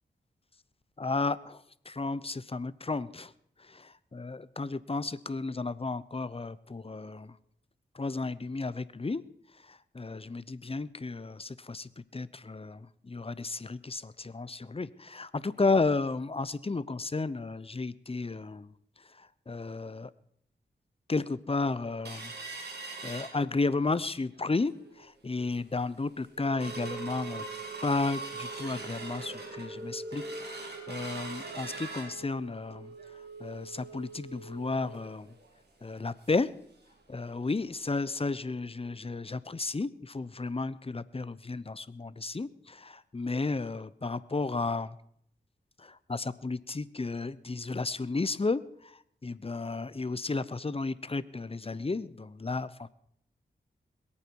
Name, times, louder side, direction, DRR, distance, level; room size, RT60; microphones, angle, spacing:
voice 1, 1.0-3.3 3.6-7.4 7.9-9.2 9.5-20.1 21.1-22.3 23.0-27.4 27.8-32.9 33.4-35.3 35.8-36.5 37.1-45.0 45.8-52.9, left 3 dB, 30° left, 17 dB, 0.9 m, -33 dB
sound 1, 22.0-23.9 24.3-24.4 24.8-25.1 25.6-25.7 26.0-36.6 36.9-37.0 37.3-37.5 38.0-38.1, right 4 dB, 65° right, 3.5 m, -42 dB
22.0 x 8.8 x 4.8 m, 0.69 s
cardioid pair, 40°, 18 cm